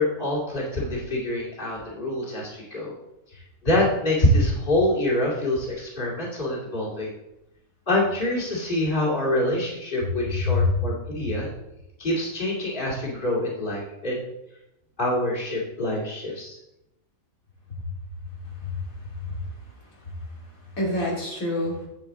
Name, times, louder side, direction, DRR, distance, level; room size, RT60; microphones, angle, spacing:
voice 1, 0.0-3.0 3.3-7.1 7.9-11.5 12.0-14.2 15.0-16.6, left 1 dB, 35° left, -5 dB, 2.8 m, -25 dB
voice 2, 10.2-10.6 18.6-19.4 20.7-21.8, left 3 dB, 80° left, -4 dB, 3.2 m, -27 dB
9.7 x 8.8 x 3.7 m, 0.89 s
omnidirectional pair, 1.4 m